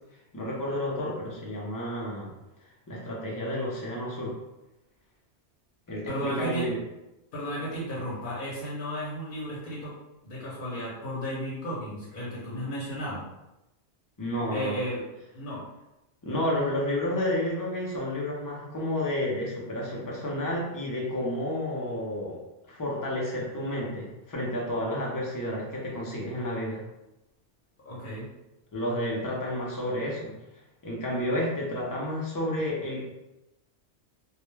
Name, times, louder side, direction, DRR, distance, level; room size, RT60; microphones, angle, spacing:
voice 1, 0.3-2.3 2.9-4.3 5.9-6.8 14.2-14.8 16.2-22.4 22.6-26.8 28.7-30.3 30.8-33.1, left 1 dB, 25° left, -4 dB, 0.5 m, -31 dB
voice 2, 6.1-6.7 7.3-9.9 10.2-13.2 14.5-15.1 15.3-15.6 27.8-28.3, equal, 50° left, -6 dB, 0.8 m, -34 dB
2.3 x 2.2 x 3.1 m, 0.95 s
omnidirectional pair, 1.2 m